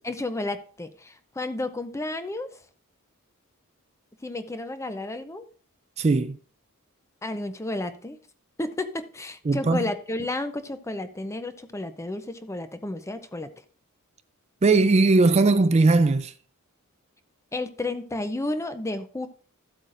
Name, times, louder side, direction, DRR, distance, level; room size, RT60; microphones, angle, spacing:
voice 1, 0.0-2.6 4.2-5.5 7.2-8.2 8.6-13.5 17.5-19.3, left 2 dB, 15° left, 0.6 m, -32 dB
voice 2, 6.0-6.4 9.5-9.8 14.6-16.3, right 3 dB, 30° right, 0.4 m, -19 dB
14.0 x 8.0 x 2.5 m
head